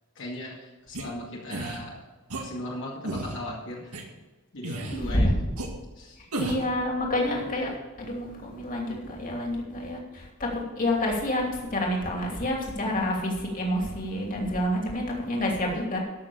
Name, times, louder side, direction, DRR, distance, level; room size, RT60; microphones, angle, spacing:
voice 1, 0.2-2.0 2.3-4.0 4.5-5.3 6.0-6.2, left 1 dB, 60° left, -4 dB, 2.2 m, -38 dB
sound 1, 0.9-1.0 1.5-1.8 2.3-2.4 3.0-3.4 3.9-4.0 4.6-5.0 5.6-5.7 6.3-6.7, right 2 dB, 80° right, 2.2 m, -33 dB
voice 2, 4.9-5.3 6.2-16.0, left 1 dB, 40° left, -1 dB, 2.8 m, -28 dB
13.5 x 6.2 x 7.1 m, 1.2 s
head